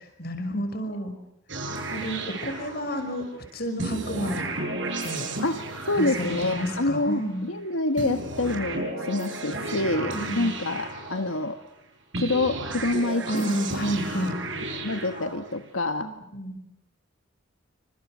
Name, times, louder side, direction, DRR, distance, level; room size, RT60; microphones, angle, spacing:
voice 1, 0.2-1.1 1.9-4.6 5.0-5.2 5.9-7.5 10.1-10.5 13.3-14.3 16.0-16.6, equal, 50° left, 7 dB, 6.1 m, -30 dB
sound 1, 1.5-3.3 3.8-7.4 8.0-11.6 12.1-15.7, right 2 dB, 65° right, 7.7 m, -33 dB
voice 2, 5.4-7.2 7.5-11.6 12.2-13.5 14.8-16.1, left 2 dB, 90° left, 7 dB, 1.6 m, -27 dB
28.5 x 26.5 x 6.5 m, 0.85 s
head